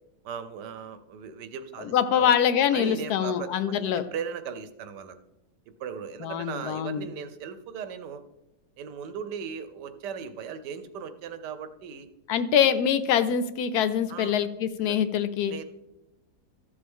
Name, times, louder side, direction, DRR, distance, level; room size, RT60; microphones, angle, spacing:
voice 1, 0.2-2.3 2.7-5.2 5.8-8.2 8.8-12.1 14.1-14.4 14.8-15.0 15.5-15.6, right 7 dB, 90° right, 11 dB, 1.4 m, -38 dB
voice 2, 1.8-4.1 6.2-7.1 12.3-15.5, left 8 dB, 75° left, 12 dB, 1.1 m, -24 dB
13.5 x 6.9 x 3.6 m, 0.90 s
omnidirectional pair, 1.8 m